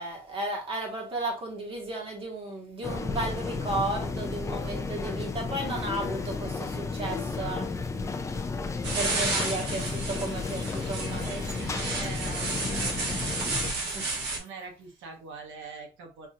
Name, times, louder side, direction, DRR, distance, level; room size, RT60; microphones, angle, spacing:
voice 1, 0.0-7.7 8.9-11.3 13.2-13.6 13.9-14.1, right 2 dB, 30° right, 1.3 m, -34 dB
sound 1, 2.8-13.7, left 4 dB, 15° left, 0.4 m, -33 dB
sound 2, 8.8-14.4, right 3 dB, 65° right, 1.3 m, -32 dB
voice 2, 11.1-13.4 14.3-16.3, right 4 dB, 85° right, 1.0 m, -43 dB
5.8 x 2.7 x 2.4 m
cardioid pair, 170°, 19 cm